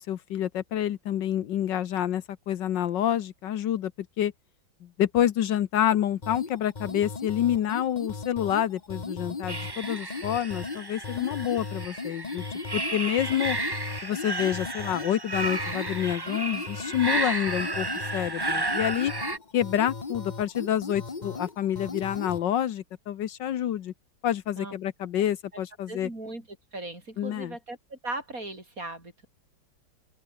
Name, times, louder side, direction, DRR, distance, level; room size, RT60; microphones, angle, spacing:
voice 1, 0.0-3.9 4.2-4.3 4.8-12.4 12.7-13.6 14.0-17.9 18.1-19.1 19.5-23.9 24.2-26.1 27.2-27.5, left 10 dB, 70° left, 1.6 m, -28 dB
sound 1, 6.2-22.4, left 4 dB, 25° left, 1.4 m, -37 dB
sound 2, 9.5-19.4, right 2 dB, 15° right, 1.1 m, -33 dB
voice 2, 25.9-26.5 26.7-29.3, right 2 dB, 45° right, 6.7 m, -38 dB
open air
omnidirectional pair, 2.0 m